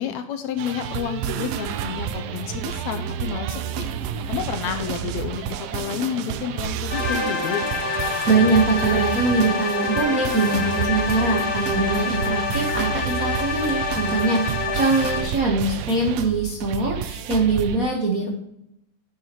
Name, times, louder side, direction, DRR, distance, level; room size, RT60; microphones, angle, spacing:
voice 1, 0.0-3.9 4.3-7.7, left 9 dB, 80° left, 8 dB, 1.8 m, -30 dB
sound 1, 0.6-17.8, right 8 dB, 90° right, 1.4 m, -30 dB
sound 2, 6.9-15.2, left 4 dB, 55° left, 4.0 m, -26 dB
voice 2, 8.3-18.3, right 3 dB, 65° right, 0 dB, 0.8 m, -22 dB
10.5 x 7.3 x 3.0 m, 0.80 s
omnidirectional pair, 3.6 m